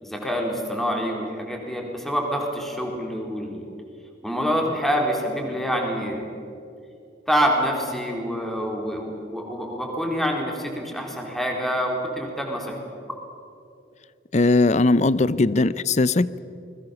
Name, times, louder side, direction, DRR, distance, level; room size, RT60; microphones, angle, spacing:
voice 1, 0.0-3.7 4.2-6.3 7.3-12.8, equal, ahead, 0 dB, 4.1 m, -26 dB
voice 2, 14.3-16.4, left 2 dB, 40° left, 17 dB, 0.6 m, -19 dB
28.5 x 21.5 x 7.1 m, 2.7 s
head